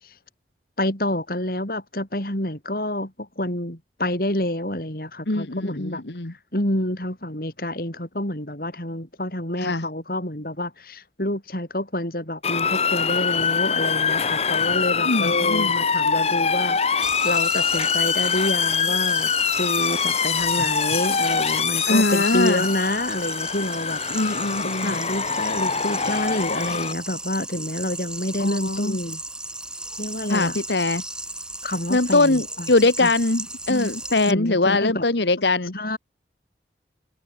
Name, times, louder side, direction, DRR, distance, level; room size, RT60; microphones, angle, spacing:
voice 1, 0.8-6.0 6.5-24.4 24.6-29.2 30.0-30.5 31.6-32.7 33.0-33.1 33.7-33.9 34.3-35.0 35.7-36.0, left 1 dB, 55° left, 5.0 m, -28 dB
voice 2, 5.3-6.3 9.6-9.9 15.0-15.7 21.9-22.6 24.1-25.0 28.4-29.0 30.3-31.0 31.9-35.7, left 2 dB, 80° left, 1.8 m, -22 dB
Motor vehicle (road) / Siren, 12.4-26.9, left 6 dB, 35° left, 1.1 m, -24 dB
sound 1, 17.0-34.3, right 2 dB, 5° right, 2.4 m, -35 dB
head